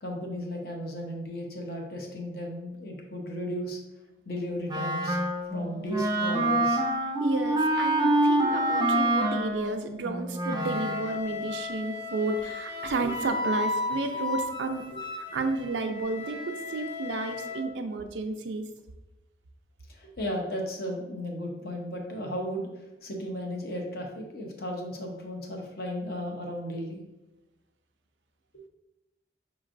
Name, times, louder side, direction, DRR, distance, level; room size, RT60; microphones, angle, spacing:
voice 1, 0.0-3.8 4.3-5.2 5.5-6.8 19.9-22.7 23.0-27.0, equal, 60° left, 1 dB, 0.7 m, -35 dB
Wind instrument woodwind instrument, 4.7-11.2, right 1 dB, 25° right, 0.4 m, -26 dB
voice 2, 7.2-14.9 15.3-18.7, right 3 dB, 85° right, 6 dB, 0.4 m, -32 dB
Wind instrument woodwind instrument 2, 10.5-17.6, left 3 dB, 25° left, 0.6 m, -35 dB
5.1 x 3.1 x 2.5 m, 0.99 s
head